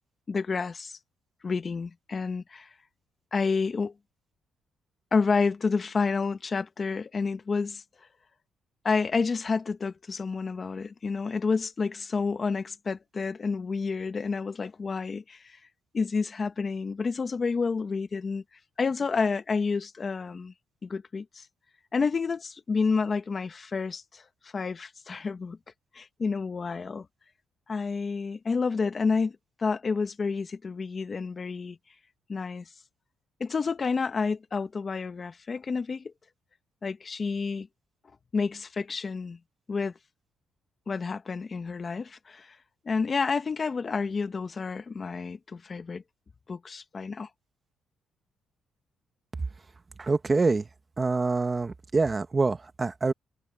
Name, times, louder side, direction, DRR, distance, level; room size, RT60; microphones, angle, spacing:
voice 1, 0.3-1.0 1.4-2.7 3.3-3.9 5.1-7.8 8.8-15.6 15.9-18.4 18.8-20.5 20.8-21.5 21.9-24.2 24.5-25.6 26.0-27.1 27.7-31.8 32.3-32.7 33.4-36.1 36.8-37.7 38.3-39.4 39.7-39.9 40.9-42.6 42.9-46.0 46.5-47.3, left 4 dB, 35° left, 1.7 m, -29 dB
voice 2, 50.0-50.7 51.0-53.1, right 3 dB, 25° right, 1.6 m, -25 dB
cardioid pair, 90°, 0 cm